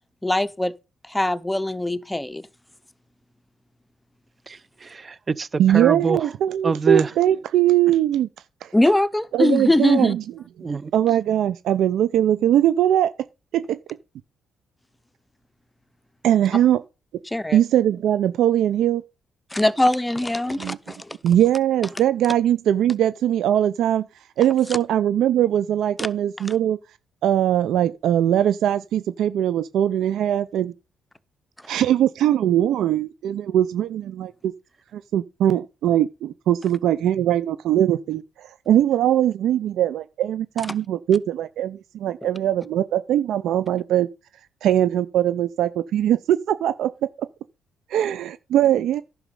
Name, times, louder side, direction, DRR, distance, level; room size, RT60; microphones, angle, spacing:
voice 1, 0.2-0.7 1.1-2.4 8.7-10.2 17.3-17.6 19.5-21.2 26.0-26.1 26.4-26.5 42.2-42.3, left 1 dB, 10° left, 0.8 m, -22 dB
voice 2, 4.5-6.3 6.6-7.1 10.6-10.9, right 4 dB, 35° right, 0.7 m, -25 dB
voice 3, 5.6-8.3 8.6-8.7 9.3-10.2 10.9-13.1 13.5-13.8 16.2-16.8 17.5-19.0 20.6-20.8 21.2-24.1 24.4-26.8 27.2-30.7 31.7-34.5 34.9-44.1 44.6-46.9 47.9-49.0, right 11 dB, 75° right, 0.5 m, -21 dB
11.0 x 6.2 x 5.4 m
cardioid pair, 90°, 0 cm